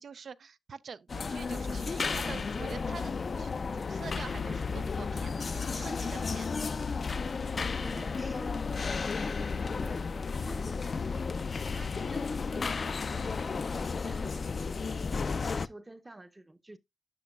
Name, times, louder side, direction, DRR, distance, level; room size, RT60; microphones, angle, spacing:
voice 1, 0.0-6.5 15.0-15.1, right 6 dB, 80° right, 0.4 m, -46 dB
sound 1, 1.1-15.7, left 4 dB, 60° left, 0.3 m, -33 dB
voice 2, 7.5-10.0 10.4-11.1 11.5-13.5 13.8-16.8, right 2 dB, 20° right, 0.6 m, -50 dB
10.5 x 6.0 x 2.2 m
wide cardioid pair, 80°, 0 cm